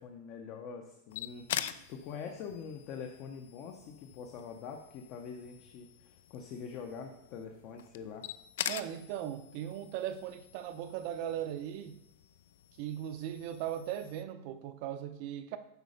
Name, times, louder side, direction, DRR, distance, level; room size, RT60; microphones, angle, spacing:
voice 1, 0.0-1.5 1.9-8.3, left 6 dB, 35° left, 0.7 m, -44 dB
sound 1, 1.1-14.2, left 11 dB, 70° left, 0.4 m, -45 dB
voice 2, 8.7-12.0 12.8-15.6, right 11 dB, 45° right, 0.5 m, -38 dB
8.1 x 4.2 x 5.0 m
supercardioid pair, 165°, 0 cm